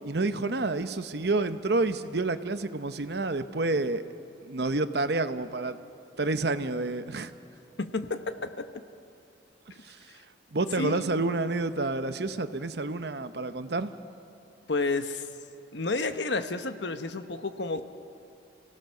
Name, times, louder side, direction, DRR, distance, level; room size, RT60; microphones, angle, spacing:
voice 1, 0.0-4.0 4.4-5.8 6.2-7.3 9.8-10.0 10.5-13.9, right 2 dB, 60° right, 10 dB, 0.9 m, -29 dB
voice 2, 7.8-8.7 10.8-11.2 14.7-15.3 15.7-17.8, left 3 dB, 70° left, 9 dB, 1.1 m, -31 dB
29.5 x 17.0 x 6.5 m, 2.6 s
head